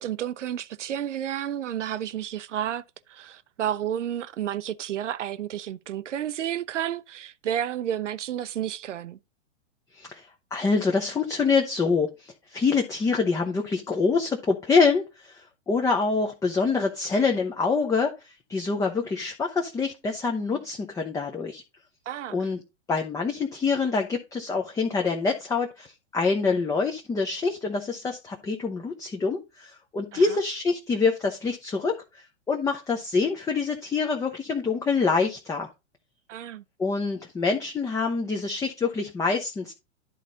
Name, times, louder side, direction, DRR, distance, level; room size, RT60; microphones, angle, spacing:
voice 1, 0.0-2.8 3.1-9.2 22.1-22.4 30.1-30.2 36.3-36.6, right 10 dB, 75° right, 0.6 m, -31 dB
voice 2, 9.9-10.3 10.5-21.6 22.3-22.6 22.9-35.7 36.8-39.7, left 4 dB, 10° left, 0.6 m, -26 dB
11.0 x 4.0 x 3.8 m
figure-of-eight pair, 110°, 37 cm